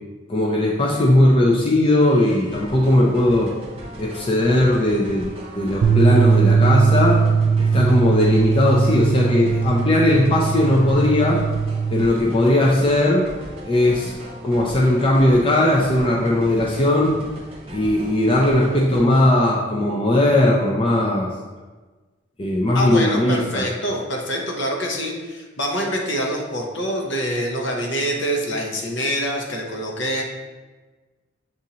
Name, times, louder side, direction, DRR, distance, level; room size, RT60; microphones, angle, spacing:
voice 1, 0.3-3.5 4.0-5.3 5.5-7.2 7.6-11.4 11.9-13.2 13.6-14.1 14.4-17.2 17.7-21.3 22.4-23.7, left 1 dB, 25° left, -3 dB, 0.4 m, -18 dB
sound 1, 2.0-19.0, right 1 dB, 30° right, 0.8 m, -38 dB
sound 2, 5.8-12.1, right 5 dB, 90° right, 0.3 m, -19 dB
voice 2, 22.7-30.2, equal, 60° left, 0 dB, 0.8 m, -25 dB
7.1 x 2.6 x 2.8 m, 1.3 s
head